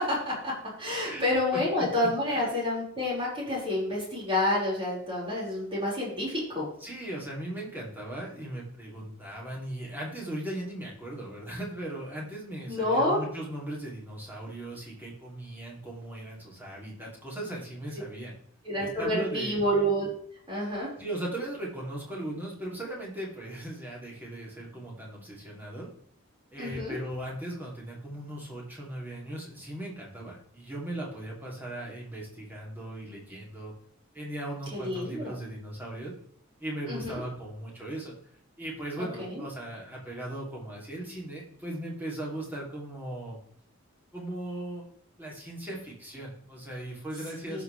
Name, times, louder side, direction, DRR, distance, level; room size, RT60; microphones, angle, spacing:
voice 1, 0.0-6.7 12.7-13.2 18.6-20.1 20.5-20.9 26.6-27.0 34.7-35.3 36.9-37.2 39.2-39.4 47.5-47.6, left 1 dB, 25° right, -6 dB, 5.1 m, -28 dB
voice 2, 1.5-1.8 2.3-2.4 6.8-18.3 18.8-19.6 21.0-25.9 26.5-33.7 34.1-36.1 36.6-38.1 38.6-43.4 44.1-44.8 45.2-47.6, right 1 dB, 10° right, -4 dB, 3.0 m, -38 dB
16.5 x 6.1 x 3.4 m, 0.63 s
head